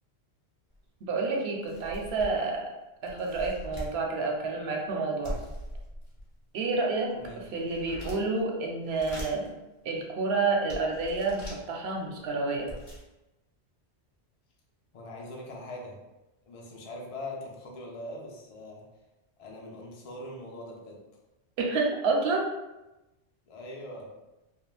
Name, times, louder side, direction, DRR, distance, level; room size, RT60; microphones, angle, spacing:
sound 1, 0.7-0.8 1.2-1.3 1.6-2.5 3.1-4.0 5.2-6.3 6.9-8.4 8.8-9.5 10.1-10.2 10.7-11.6 12.3-12.4 12.5-13.0, equal, 30° left, 0.9 m, -41 dB
voice 1, 1.0-2.7 3.0-5.4 6.5-7.1 7.5-9.5 9.8-12.7 21.6-22.5, right 3 dB, 70° right, 0 dB, 0.8 m, -29 dB
voice 2, 7.1-7.5 14.9-16.0 16.5-18.8 19.4-21.0 23.5-24.1, left 1 dB, 50° left, -2 dB, 0.4 m, -42 dB
3.3 x 2.2 x 2.4 m, 1.0 s
omnidirectional pair, 1.1 m